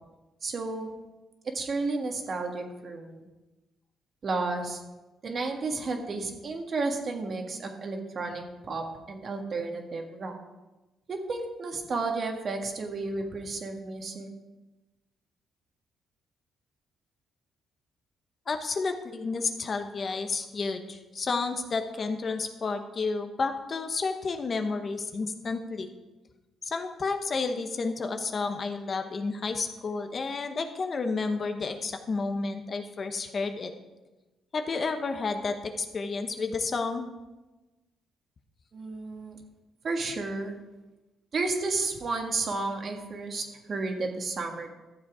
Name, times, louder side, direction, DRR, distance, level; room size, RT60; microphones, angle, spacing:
voice 1, 0.4-0.9 1.5-3.2 4.2-4.8 5.2-10.3 11.1-14.3 38.7-39.4 39.8-40.6 41.3-44.7, right 3 dB, 45° right, 3 dB, 1.7 m, -32 dB
voice 2, 18.5-25.9 26.6-33.7 34.5-37.1, left 4 dB, 40° left, 7 dB, 1.0 m, -31 dB
13.0 x 7.3 x 4.9 m, 1.1 s
cardioid pair, 90°, 0 cm